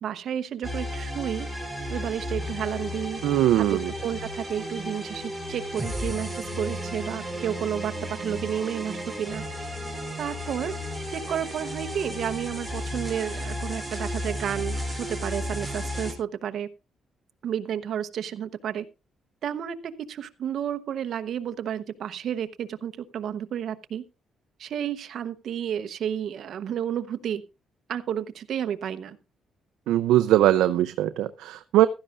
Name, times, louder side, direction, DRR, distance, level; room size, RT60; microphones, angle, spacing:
voice 1, 0.0-1.5 1.9-3.2 3.6-9.4 10.2-10.7 11.1-16.7 17.4-18.8 19.4-24.0 24.6-27.4 27.9-29.2, right 9 dB, 65° right, 10 dB, 0.9 m, -31 dB
sound 1, 0.6-16.1, equal, ahead, 3.5 m, -33 dB
voice 2, 3.2-3.9 29.9-31.9, right 13 dB, 90° right, 11 dB, 0.5 m, -21 dB
15.5 x 12.5 x 2.5 m, 0.28 s
cardioid pair, 90°, 0 cm